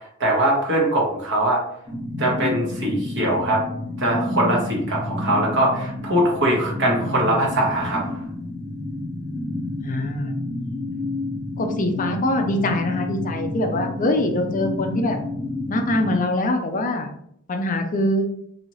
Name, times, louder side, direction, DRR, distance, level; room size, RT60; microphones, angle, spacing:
voice 1, 0.2-1.6 2.2-3.6 4.0-8.1, right 1 dB, 55° right, -2 dB, 1.3 m, -21 dB
sound 1, 1.9-16.2, left 2 dB, 35° right, 1.3 m, -29 dB
voice 2, 9.8-10.4 11.6-15.2 15.7-17.1 17.5-18.3, left 1 dB, 35° left, 5 dB, 0.5 m, -23 dB
3.1 x 2.7 x 3.9 m, 0.69 s
head